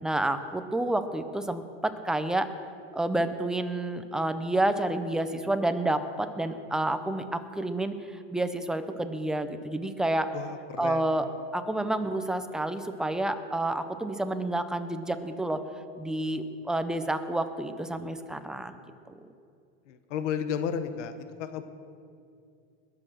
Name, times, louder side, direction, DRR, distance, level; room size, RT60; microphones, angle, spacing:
voice 1, 0.0-2.5 2.9-10.3 10.8-11.3 11.5-15.6 16.0-18.8 19.2-19.3, right 1 dB, ahead, 8 dB, 0.5 m, -29 dB
voice 2, 10.3-11.0 19.9-21.6, left 7 dB, 90° left, 9 dB, 1.2 m, -33 dB
21.0 x 7.9 x 6.2 m, 2.4 s
supercardioid pair, 150°, 35 cm